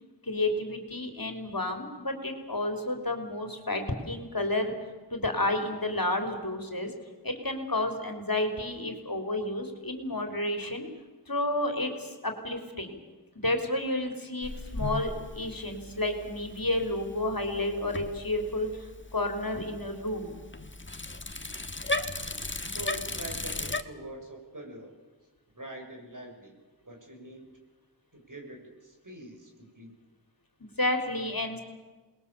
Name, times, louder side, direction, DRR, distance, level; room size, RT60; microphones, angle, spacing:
voice 1, 0.2-4.7 5.1-6.9 7.2-10.9 11.3-12.9 13.3-20.4 30.6-31.6, left 1 dB, 55° left, 5 dB, 3.9 m, -31 dB
Bicycle, 14.4-23.8, left 2 dB, 30° left, 1.5 m, -37 dB
voice 2, 22.7-24.9 25.5-26.5 26.8-27.5 28.1-29.9, right 1 dB, 50° right, 1 dB, 6.8 m, -44 dB
28.0 x 21.0 x 7.0 m, 1.3 s
wide cardioid pair, 45°, 41 cm